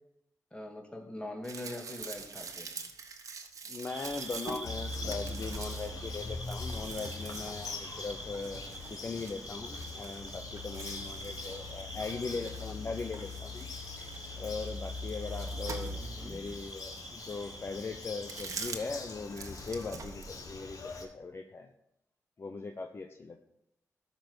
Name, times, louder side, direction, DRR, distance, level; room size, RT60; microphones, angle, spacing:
voice 1, 0.5-2.7 16.0-16.4, left 1 dB, 15° left, 2 dB, 2.3 m, -42 dB
sound 1, 1.4-12.9 13.1-16.3 16.9-17.0 18.1-19.0 19.3-20.6, right 5 dB, 70° right, 1.4 m, -46 dB
voice 2, 3.7-13.7 14.3-21.7 22.4-23.4, left 4 dB, 45° left, 5 dB, 0.8 m, -40 dB
sound 2, 3.9-18.7, right 1 dB, 15° right, 2.5 m, -47 dB
Bird vocalization bird call bird song, 4.6-21.0, left 3 dB, 75° left, 1.6 m, -42 dB
13.5 x 5.4 x 6.1 m, 0.78 s
cardioid pair, 80°, 6 cm